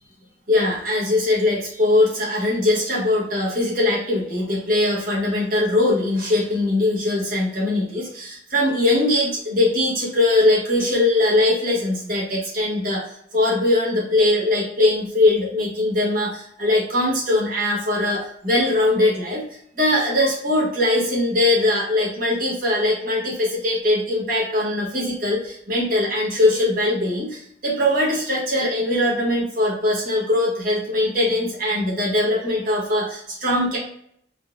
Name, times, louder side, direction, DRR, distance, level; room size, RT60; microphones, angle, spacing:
voice 1, 0.5-13.0 13.3-19.4 19.8-33.8, left 2 dB, 50° right, -5 dB, 1.1 m, -21 dB
3.7 x 2.5 x 2.4 m, 0.70 s
head